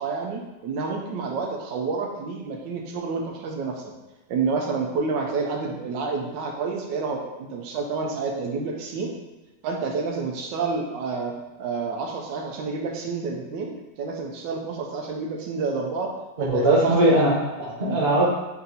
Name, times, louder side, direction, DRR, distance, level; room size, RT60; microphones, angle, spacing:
voice 1, 0.0-3.8 4.3-9.1 9.6-16.1 16.4-16.9 17.8-18.0, right 4 dB, 85° right, 1 dB, 1.3 m, -29 dB
voice 2, 16.4-18.2, right 1 dB, 40° right, -4 dB, 1.1 m, -20 dB
4.2 x 2.7 x 3.9 m, 1.1 s
omnidirectional pair, 1.9 m